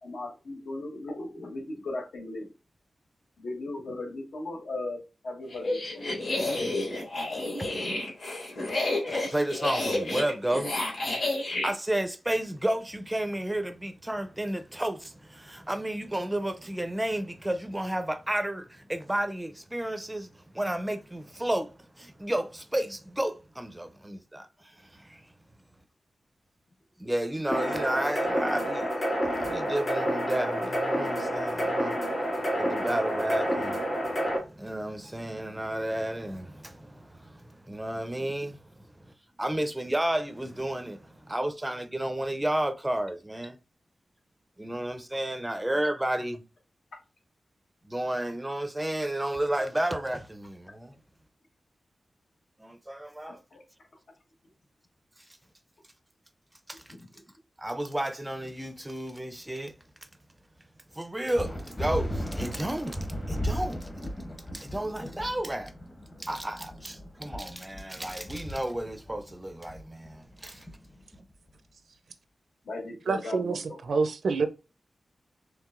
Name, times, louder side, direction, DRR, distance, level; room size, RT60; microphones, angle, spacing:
voice 1, 0.0-2.5 3.4-6.1 53.3-53.6 57.0-57.1 72.6-73.8, left 2 dB, 85° left, 1.2 m, -37 dB
sound 1, 5.5-11.7, left 2 dB, 60° left, 2.1 m, -30 dB
voice 2, 8.7-10.8 11.4-25.3 27.0-43.6 44.6-46.4 47.8-51.0 52.6-53.4 55.2-55.4 56.7-57.0 57.6-59.8 60.9-63.9 64.5-65.7 66.2-70.8, right 1 dB, 10° right, 0.4 m, -32 dB
sound 2, 27.5-34.4, equal, 40° left, 2.2 m, -29 dB
sound 3, 61.4-71.3, equal, 20° left, 0.8 m, -36 dB
voice 3, 73.1-74.5, right 4 dB, 70° right, 0.5 m, -27 dB
4.6 x 3.2 x 2.4 m
wide cardioid pair, 160°, 0 cm